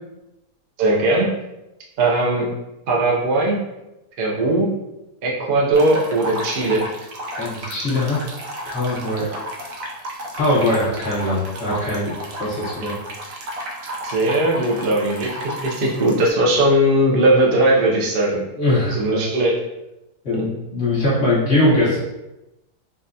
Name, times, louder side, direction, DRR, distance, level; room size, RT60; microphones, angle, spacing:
voice 1, 0.8-1.3 2.0-2.5 2.9-3.6 4.2-4.7 5.2-6.8 14.0-18.4 18.9-19.5 20.3-20.4, right 1 dB, 85° right, -3 dB, 0.4 m, -19 dB
sound 1, 5.7-16.3, equal, 65° right, 1.0 m, -32 dB
voice 2, 7.4-8.2 8.7-9.3 10.3-13.0 18.6-19.2 20.2-22.0, left 1 dB, 45° left, -9 dB, 1.6 m, -21 dB
3.7 x 2.2 x 2.6 m, 0.94 s
omnidirectional pair, 1.7 m